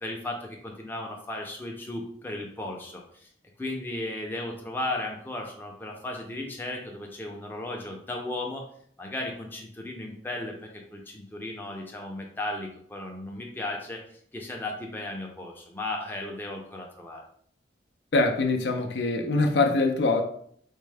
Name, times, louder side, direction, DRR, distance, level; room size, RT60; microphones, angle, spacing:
voice 1, 0.0-3.3 3.6-8.6 9.0-14.0 14.3-17.2, left 1 dB, 10° left, 0 dB, 0.5 m, -35 dB
voice 2, 18.1-20.2, left 3 dB, 75° left, 5 dB, 0.4 m, -23 dB
4.3 x 2.1 x 3.3 m, 0.62 s
head